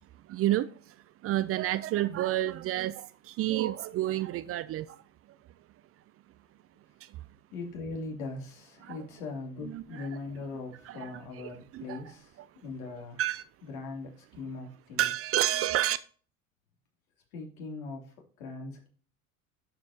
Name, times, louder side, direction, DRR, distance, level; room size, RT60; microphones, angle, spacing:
voice 1, 0.3-0.9 1.2-5.0 7.0-7.2 8.8-9.0 9.7-9.8 10.9-11.1 11.7-12.0 13.2-13.4 15.0-16.0, right 14 dB, 35° right, 0.4 m, -29 dB
voice 2, 7.5-13.2 13.6-15.1 17.3-18.9, left 3 dB, 70° left, 2.9 m, -40 dB
12.0 x 5.1 x 2.8 m
hypercardioid pair, 80°, 41 cm